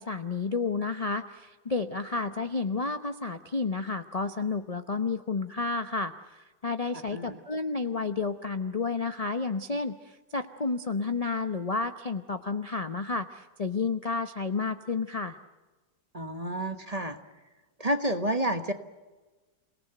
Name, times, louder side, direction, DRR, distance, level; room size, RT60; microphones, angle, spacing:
voice 1, 0.0-9.9 10.3-15.4, left 4 dB, 35° left, 9 dB, 0.6 m, -31 dB
voice 2, 16.1-17.2 17.8-18.7, right 1 dB, 25° right, 8 dB, 1.2 m, -29 dB
29.0 x 18.5 x 7.9 m, 1.2 s
omnidirectional pair, 2.0 m